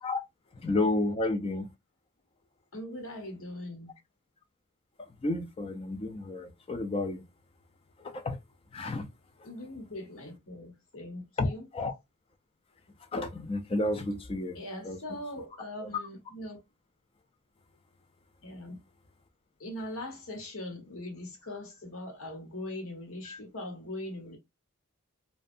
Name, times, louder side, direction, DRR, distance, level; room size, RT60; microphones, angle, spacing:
voice 1, 0.6-1.7 5.2-7.2 8.1-8.4 8.7-9.1 11.4-11.9 13.1-14.6 14.9-15.0 15.8-15.9 23.3-23.4, left 2 dB, 25° left, 0.3 m, -31 dB
voice 2, 2.7-3.9 9.4-11.7 14.5-16.6 18.4-18.8 19.6-24.4, left 1 dB, 70° left, 1.0 m, -41 dB
2.6 x 2.2 x 2.4 m
head